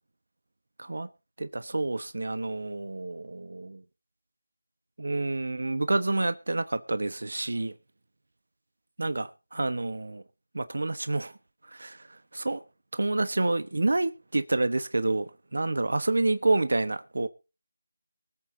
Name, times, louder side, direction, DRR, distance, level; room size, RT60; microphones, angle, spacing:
voice 1, 1.4-3.8 5.0-7.7 9.0-10.2 10.5-11.3 11.7-12.6 12.9-17.3, right 2 dB, 70° right, 12 dB, 1.2 m, -28 dB
24.0 x 8.8 x 2.8 m, 0.31 s
figure-of-eight pair, 170°, 0 cm